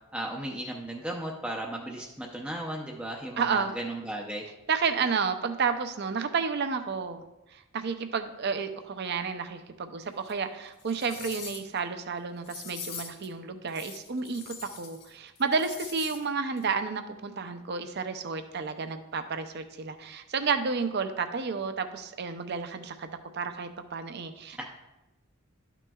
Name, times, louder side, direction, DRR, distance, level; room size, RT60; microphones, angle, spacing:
voice 1, 0.1-4.4 24.6-24.7, right 1 dB, 5° right, -1 dB, 0.5 m, -35 dB
voice 2, 3.4-3.7 4.7-7.2 7.5-23.1 23.3-24.6, right 5 dB, 50° right, 9 dB, 0.5 m, -31 dB
sound 1, 10.2-10.3 10.8-11.8 12.4-13.3 13.7-15.1 15.3-16.2 16.6-16.7, left 6 dB, 50° left, 1.4 m, -42 dB
12.0 x 6.0 x 2.3 m, 0.99 s
head